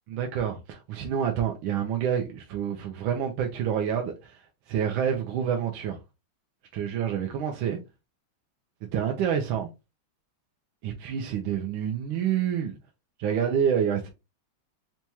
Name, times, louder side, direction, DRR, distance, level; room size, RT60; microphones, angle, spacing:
voice 1, 0.1-4.4 4.7-6.0 6.7-7.8 8.8-9.7 10.8-12.7 13.2-14.1, right 8 dB, 90° right, 1.4 m, -28 dB
4.5 x 2.3 x 2.7 m
omnidirectional pair, 2.1 m